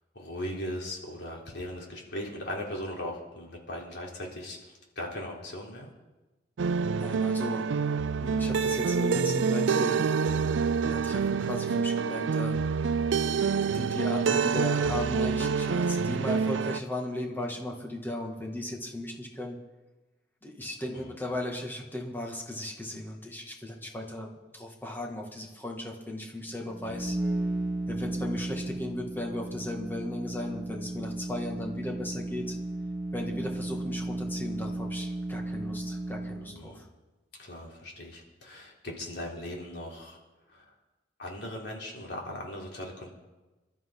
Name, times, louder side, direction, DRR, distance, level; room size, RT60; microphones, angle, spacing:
voice 1, 0.1-5.9 13.2-13.5 20.9-21.1 26.8-27.0 36.5-36.9 37.4-40.2 40.5-40.6 41.2-43.1, left 1 dB, 65° left, -2 dB, 3.8 m, -39 dB
sound 1, 6.6-16.8, right 5 dB, 85° right, 0.4 m, -27 dB
voice 2, 7.0-7.7 8.2-10.1 10.8-12.9 13.6-19.6 20.4-27.2 27.9-32.6 33.1-36.9, left 1 dB, 10° left, -1 dB, 2.3 m, -36 dB
sound 2, 26.7-36.6, right 2 dB, 5° right, 3.2 m, -34 dB
27.0 x 12.5 x 4.0 m, 1.1 s
head